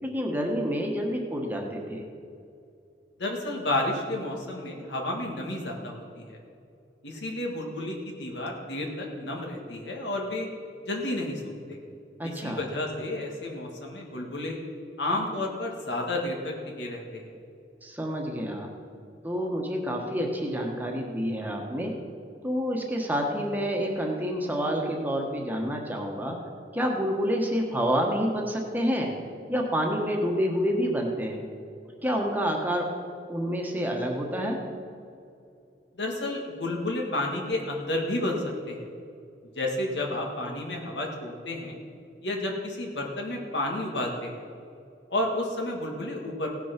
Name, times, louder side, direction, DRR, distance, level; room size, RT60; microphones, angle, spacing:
voice 1, 0.0-2.0 12.2-12.6 17.8-18.7 19.2-21.9 22.4-26.4 26.7-29.1 29.5-31.4 32.0-32.9 33.3-34.6, equal, 10° right, 0 dB, 1.3 m, -28 dB
voice 2, 3.2-6.4 7.0-10.5 10.8-11.8 12.2-14.6 15.0-17.2 35.9-38.9 39.6-41.8 42.2-44.4 45.1-46.5, left 1 dB, 80° left, 0 dB, 1.9 m, -31 dB
17.0 x 6.1 x 5.9 m, 2.6 s
head